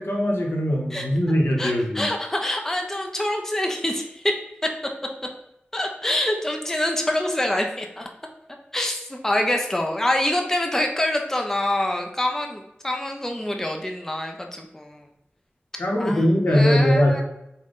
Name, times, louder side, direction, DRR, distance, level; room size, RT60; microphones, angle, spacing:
voice 1, 0.0-2.1 15.8-17.2, equal, 70° left, 0 dB, 0.7 m, -21 dB
voice 2, 1.6-4.3 4.6-4.7 5.7-8.1 8.7-15.0 16.0-17.2, left 1 dB, 10° left, 2 dB, 0.4 m, -26 dB
3.4 x 2.1 x 3.7 m, 0.86 s
wide cardioid pair, 65°, 4 cm